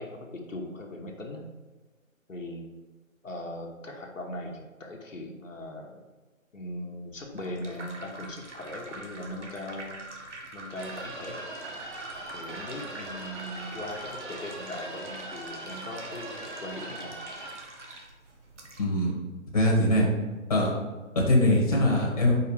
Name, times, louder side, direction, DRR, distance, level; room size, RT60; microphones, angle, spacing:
voice 1, 0.0-1.4 2.3-2.6 3.2-6.0 6.5-10.0 10.5-11.4 12.3-17.2, left 1 dB, 65° left, 0 dB, 1.1 m, -39 dB
sound 1, 7.1-18.8, right 2 dB, 60° right, 1.2 m, -45 dB
sound 2, 10.8-17.5, right 2 dB, 35° right, 1.0 m, -41 dB
voice 2, 18.8-19.1 19.5-20.1 20.5-20.7 21.1-22.3, left 1 dB, 25° left, -3 dB, 1.4 m, -22 dB
5.0 x 4.9 x 4.8 m, 1.3 s
figure-of-eight pair, 150°, 41 cm